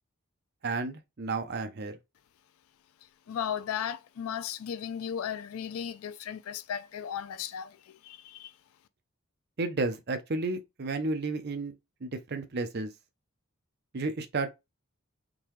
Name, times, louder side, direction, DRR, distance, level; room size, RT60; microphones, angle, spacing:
voice 1, 0.6-1.9 9.6-11.7 12.0-12.9 13.9-14.6, right 3 dB, 50° right, 0.6 m, -32 dB
voice 2, 3.3-7.7 8.0-8.5, left 8 dB, 80° left, 0.4 m, -35 dB
3.8 x 2.7 x 3.1 m
head